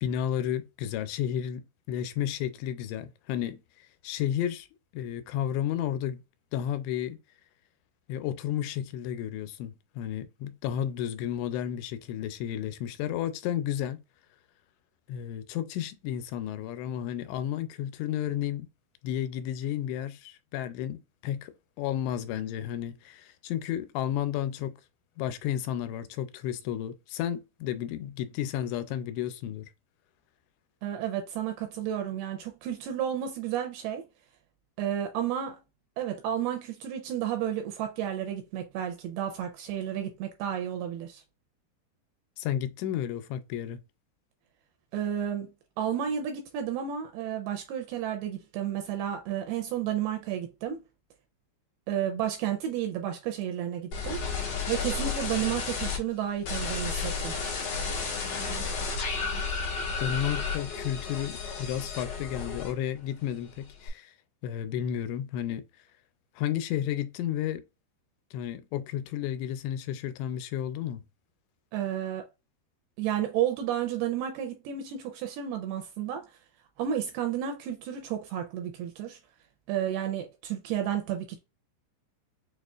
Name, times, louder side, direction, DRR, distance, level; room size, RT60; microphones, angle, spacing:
voice 1, 0.0-3.6 4.0-4.7 4.9-6.2 6.5-7.2 8.1-14.0 15.1-18.7 19.0-21.5 21.8-24.8 25.2-29.7 42.4-43.8 60.0-64.1 64.4-65.7 66.4-67.6 68.3-71.0, left 10 dB, 85° left, 2.7 m, -32 dB
voice 2, 30.8-34.0 34.8-35.6 36.0-41.2 44.9-45.5 45.8-50.8 51.9-54.2 54.7-57.4 71.7-72.3 73.0-76.2 76.8-79.2 79.7-81.4, right 10 dB, 85° right, 2.3 m, -32 dB
sound 1, 53.9-56.0 56.4-63.0 63.3-63.9, left 4 dB, 60° left, 1.7 m, -32 dB
6.4 x 2.4 x 2.3 m
omnidirectional pair, 4.9 m